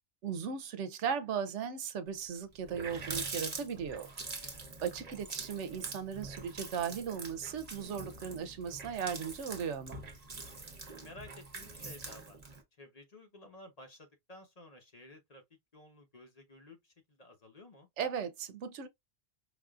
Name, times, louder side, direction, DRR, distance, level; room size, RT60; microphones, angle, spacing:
voice 1, 0.2-4.1 4.8-10.0 18.0-18.9, right 7 dB, 85° right, 1.0 m, -37 dB
Water tap faucet, 2.2-2.3 2.5-12.6, right 3 dB, 40° right, 0.9 m, -44 dB
voice 2, 10.3-12.4 12.7-15.4 15.7-17.9, left 2 dB, 35° left, 1.0 m, -54 dB
5.0 x 2.5 x 2.4 m
omnidirectional pair, 1.2 m